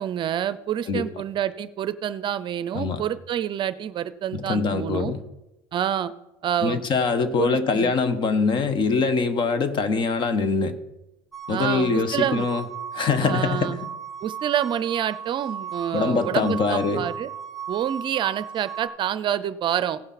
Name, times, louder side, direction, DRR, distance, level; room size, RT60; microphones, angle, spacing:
voice 1, 0.0-5.1 5.7-6.1 6.4-6.8 7.4-7.9 11.5-12.5 13.2-13.8 14.2-17.3 17.7-20.0, right 10 dB, 45° right, 0.5 m, -27 dB
voice 2, 4.3-5.2 6.6-10.8 11.5-12.6 12.9-13.8 15.9-17.1, left 4 dB, 45° left, 1.2 m, -23 dB
sound 1, 11.3-18.9, right 7 dB, ahead, 1.8 m, -36 dB
16.5 x 5.7 x 4.2 m
supercardioid pair, 100°, 12 cm